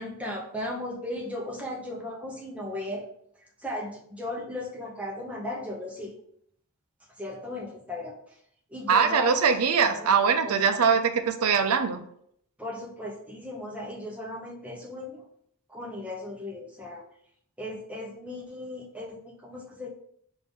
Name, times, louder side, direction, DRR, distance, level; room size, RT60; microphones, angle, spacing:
voice 1, 0.0-3.1 3.4-6.1 7.2-8.4 8.7-9.5 9.8-10.1 10.4-11.0 12.6-15.2 15.7-17.0 17.6-19.9, left 1 dB, 5° right, -2 dB, 0.8 m, -36 dB
voice 2, 8.9-12.0, right 6 dB, 80° right, 8 dB, 0.5 m, -22 dB
5.3 x 2.6 x 3.6 m, 0.68 s
head